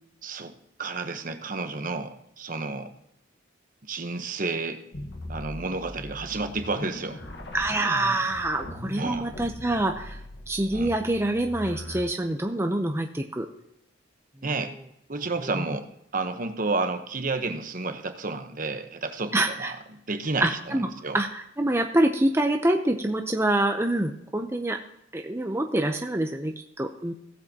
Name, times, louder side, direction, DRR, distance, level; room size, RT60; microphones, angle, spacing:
voice 1, 0.2-0.5 0.8-2.9 3.9-4.9 5.3-7.2 8.9-9.3 10.7-10.9 14.4-14.8 15.1-15.9 16.1-21.2, right 3 dB, 45° right, 8 dB, 1.0 m, -31 dB
sound 1, 4.9-12.0, left 1 dB, 60° left, 1.4 m, -40 dB
voice 2, 7.5-10.2 10.5-13.5 15.5-15.6 19.3-19.7 20.4-20.9 21.1-24.8 25.1-27.1, right 1 dB, 15° right, 4 dB, 0.6 m, -26 dB
18.0 x 7.7 x 2.9 m, 0.78 s
head